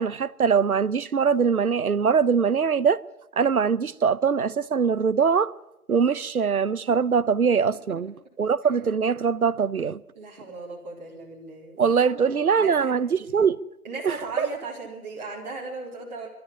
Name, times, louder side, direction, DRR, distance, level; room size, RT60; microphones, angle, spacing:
voice 1, 0.0-3.0 3.4-5.5 5.9-8.1 8.4-10.0 11.8-13.6 14.0-14.5, right 6 dB, 70° right, 0.9 m, -22 dB
voice 2, 10.2-11.8 12.0-12.9 13.8-16.3, right 3 dB, 30° right, 4.0 m, -37 dB
22.0 x 13.0 x 9.9 m
figure-of-eight pair, 150°, 45 cm